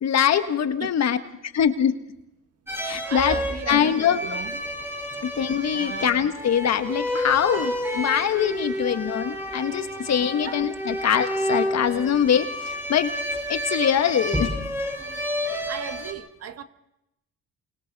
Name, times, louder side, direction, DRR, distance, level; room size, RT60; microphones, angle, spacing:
voice 1, 0.0-1.2 1.4-1.9 2.8-3.4 3.7-4.4 5.2-13.1 13.5-14.5, left 8 dB, 60° left, 1.4 m, -23 dB
sound 1, 2.7-16.1, equal, 10° right, 4.6 m, -30 dB
voice 2, 3.1-4.6 5.7-6.1 7.9-8.1 10.3-10.6 15.5-16.6, right 7 dB, 55° right, 1.6 m, -36 dB
28.5 x 25.0 x 4.1 m
cardioid pair, 90°, 30 cm